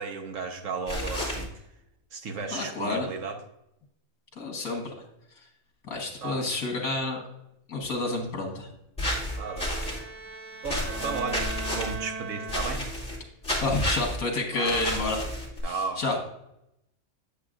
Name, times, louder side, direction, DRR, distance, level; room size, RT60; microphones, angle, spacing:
voice 1, 0.0-1.6 2.1-3.4 6.2-6.5 9.4-9.8 10.6-12.8 14.5-14.8 15.6-16.0, right 4 dB, 65° right, 5 dB, 1.4 m, -34 dB
sound 1, 0.9-1.4 9.0-10.0 10.6-11.9 12.5-13.2 13.4-14.2 14.6-15.6, left 1 dB, 5° left, 2.5 m, -31 dB
voice 2, 2.5-3.1 4.4-4.9 5.9-7.2 7.7-8.7 13.6-15.2 15.6-16.2, left 2 dB, 80° left, 1 dB, 1.9 m, -29 dB
Bowed string instrument, 9.0-13.2, right 4 dB, 85° right, 0.3 m, -39 dB
8.5 x 8.2 x 2.5 m, 0.82 s
omnidirectional pair, 1.5 m